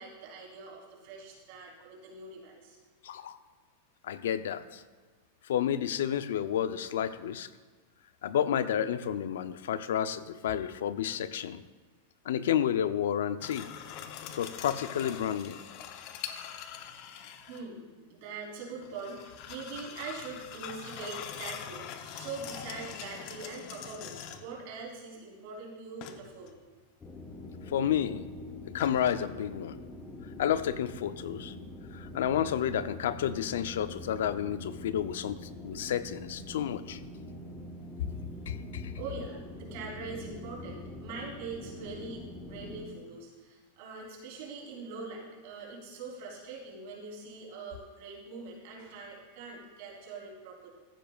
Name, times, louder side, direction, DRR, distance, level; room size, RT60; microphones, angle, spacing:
voice 1, 0.0-2.8 16.9-26.6 38.1-38.4 39.0-50.7, right 4 dB, 60° right, -2 dB, 3.4 m, -43 dB
voice 2, 3.0-3.4 4.0-4.8 5.5-7.5 8.2-11.6 12.3-13.7 14.3-15.6 27.7-28.3 28.7-29.8 30.4-31.5 31.9-37.0 38.5-38.9, left 9 dB, 80° left, 13 dB, 0.5 m, -30 dB
sound 1, 13.4-17.6 18.8-24.6 26.0-26.6 28.8-29.1, left 9 dB, 50° left, 0.7 m, -43 dB
sound 2, 27.0-42.9, left 1 dB, 15° left, 1.1 m, -44 dB
14.0 x 10.5 x 2.4 m, 1.4 s
supercardioid pair, 145°, 0 cm